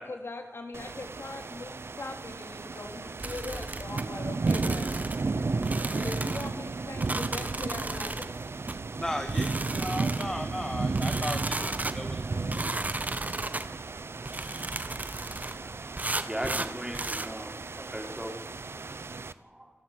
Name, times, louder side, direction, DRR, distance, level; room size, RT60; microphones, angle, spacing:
voice 1, 0.0-5.0 5.9-8.2, left 2 dB, 65° left, 5 dB, 3.3 m, -41 dB
sound 1, 0.7-19.3, right 3 dB, 70° right, 0.9 m, -34 dB
sound 2, 3.2-4.0 4.5-5.3 5.6-6.5 7.0-8.3 8.7-8.8 9.3-10.3 10.9-12.0 12.5-13.7 14.2-15.6 16.0-17.3, right 2 dB, 35° right, 1.4 m, -34 dB
voice 2, 5.5-5.9 14.4-14.5 15.2-15.3 15.6-15.7 16.3-18.3 19.4-19.7, equal, 15° right, 2 dB, 5.3 m, -38 dB
voice 3, 9.0-12.6, left 1 dB, 15° left, 7 dB, 1.8 m, -36 dB
29.0 x 12.0 x 9.8 m, 1.1 s
wide cardioid pair, 70°, 4 cm